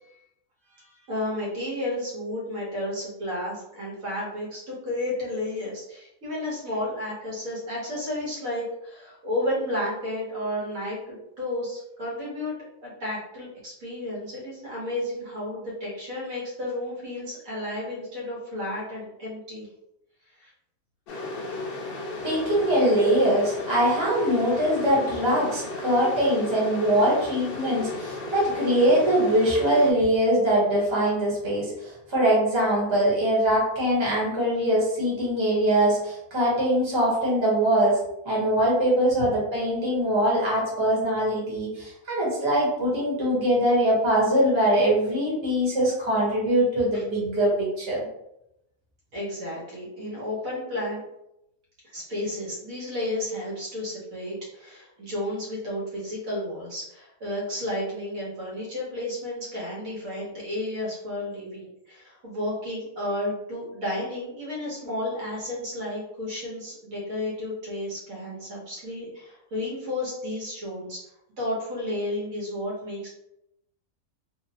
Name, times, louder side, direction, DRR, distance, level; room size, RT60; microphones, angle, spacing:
voice 1, 0.7-12.5 12.8-19.7 20.4-20.5 21.5-21.6 27.8-28.0 46.9-47.0 49.1-51.0 51.8-71.0 71.4-73.1, left 1 dB, 75° right, -4 dB, 1.5 m, -32 dB
sound 1, 21.1-29.9, left 2 dB, 65° left, 0.5 m, -34 dB
voice 2, 22.2-48.0, right 1 dB, 25° right, -6 dB, 0.9 m, -22 dB
3.0 x 2.0 x 2.8 m, 0.83 s
omnidirectional pair, 1.4 m